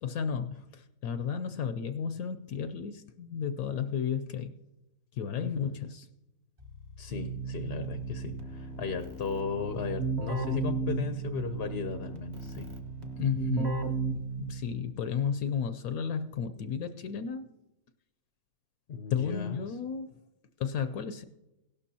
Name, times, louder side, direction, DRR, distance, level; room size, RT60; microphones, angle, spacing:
voice 1, 0.0-4.5 5.1-6.1 13.2-14.0 14.4-17.5 19.1-20.2 20.6-21.2, left 7 dB, 70° left, 9 dB, 1.0 m, -33 dB
voice 2, 5.4-5.7 7.0-12.7 18.9-19.6, left 5 dB, 55° left, 7 dB, 0.7 m, -35 dB
Keyboard (musical), 6.6-14.9, right 4 dB, 30° right, 1.1 m, -35 dB
17.0 x 12.0 x 2.8 m, 0.97 s
omnidirectional pair, 1.7 m